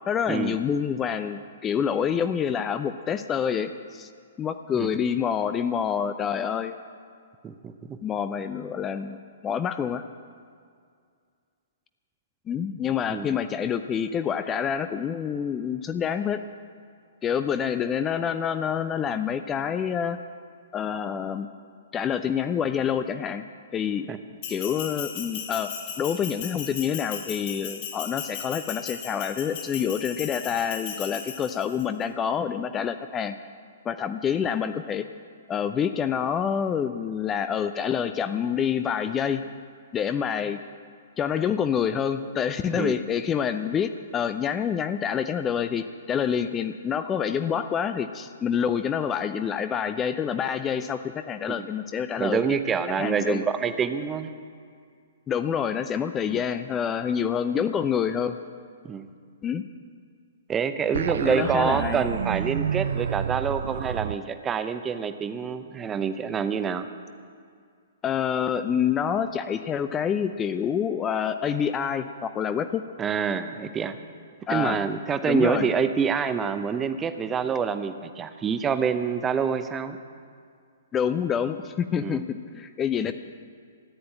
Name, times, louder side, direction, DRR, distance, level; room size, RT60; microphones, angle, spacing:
voice 1, 0.1-4.1 4.4-6.7 8.0-10.0 12.5-16.4 17.2-20.2 20.7-21.5 21.9-23.4 23.7-24.1 24.5-33.4 33.8-35.1 35.5-39.4 39.9-40.6 41.2-52.4 52.9-53.5 55.3-58.4 59.4-59.6 61.2-62.1 68.0-72.8 74.5-74.8 75.3-75.7 80.9-83.1, left 8 dB, 20° left, 10 dB, 0.5 m, -27 dB
voice 2, 7.4-8.0 13.1-13.3 24.1-24.2 42.7-42.9 51.5-51.7 52.2-54.3 56.3-56.4 58.8-59.1 60.5-66.9 73.0-74.0 74.5-80.0 82.0-82.2 83.0-83.1, right 6 dB, 15° right, 10 dB, 0.8 m, -27 dB
Bell, 24.4-31.8, left 7 dB, 40° left, 2.2 m, -37 dB
sound 1, 60.9-64.2, right 8 dB, 60° right, 0.3 m, -29 dB
14.5 x 9.6 x 8.9 m, 2.2 s
figure-of-eight pair, 115°, 0 cm